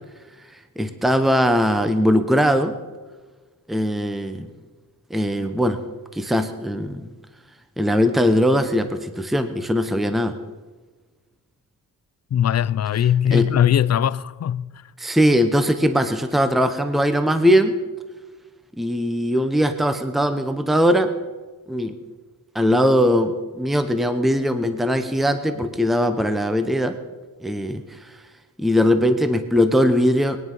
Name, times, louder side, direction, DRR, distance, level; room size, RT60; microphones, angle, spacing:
voice 1, 0.8-2.8 3.7-4.5 5.1-5.8 6.1-7.1 7.8-10.4 13.3-13.5 15.0-17.8 18.8-21.1 21.7-22.0 22.5-27.0 27.4-28.1 28.6-30.4, equal, ahead, 0.9 m, -20 dB
voice 2, 12.3-14.7, left 10 dB, 45° left, 0.5 m, -20 dB
22.0 x 9.7 x 5.5 m
wide cardioid pair, 120°, 36 cm